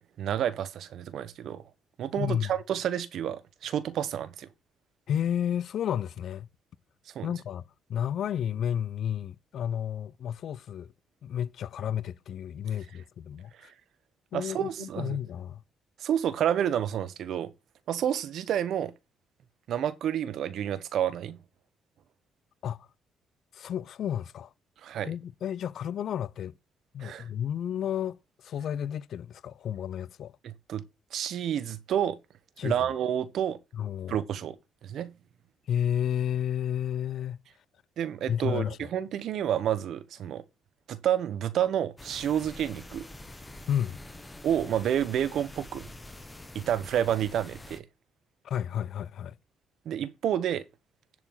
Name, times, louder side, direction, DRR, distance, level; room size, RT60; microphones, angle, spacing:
voice 1, 0.2-1.6 2.0-4.5 7.1-7.3 13.6-13.7 14.3-15.2 16.0-17.5 17.9-18.9 19.7-21.4 24.8-25.1 27.0-27.3 30.4-30.8 31.1-32.2 32.6-33.6 34.1-34.6 34.8-35.1 38.0-40.4 40.9-43.1 44.4-45.9 46.5-47.8 49.8-50.6, right 10 dB, 70° right, 1.1 m, -29 dB
voice 2, 2.2-2.5 5.1-6.5 7.2-7.6 7.9-10.9 11.2-13.7 14.3-15.6 22.6-22.9 23.5-24.5 25.0-26.5 26.9-30.3 32.6-32.7 33.7-34.2 35.7-37.4 38.3-38.8 43.7-44.0 48.4-49.4, left 9 dB, 65° left, 0.5 m, -31 dB
sound 1, 42.0-47.8, left 1 dB, 15° left, 1.3 m, -46 dB
11.0 x 4.8 x 5.6 m
cardioid pair, 90°, 0 cm